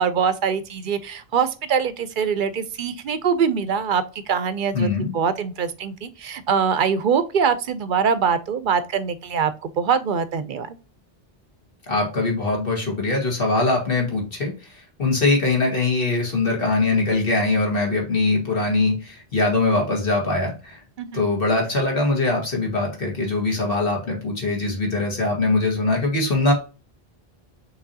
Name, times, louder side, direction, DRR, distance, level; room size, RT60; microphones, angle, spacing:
voice 1, 0.0-4.9 5.1-10.8 21.0-21.2, right 6 dB, 60° right, 0.6 m, -23 dB
voice 2, 4.7-5.2 11.9-14.5 15.0-20.8 21.1-26.5, left 3 dB, 60° left, 1.9 m, -22 dB
6.0 x 3.2 x 2.7 m
omnidirectional pair, 1.0 m